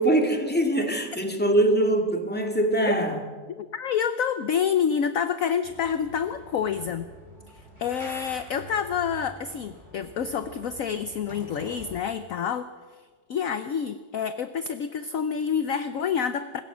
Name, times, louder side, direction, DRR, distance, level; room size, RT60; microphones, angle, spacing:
voice 1, 0.0-3.2, right 1 dB, 5° left, 3 dB, 2.3 m, -23 dB
voice 2, 3.5-7.1 7.5-12.7 13.3-16.6, left 7 dB, 55° left, 11 dB, 1.0 m, -28 dB
sound 1, 5.6-12.0, equal, 25° right, 7.6 m, -46 dB
25.5 x 21.5 x 6.2 m, 1.5 s
omnidirectional pair, 2.0 m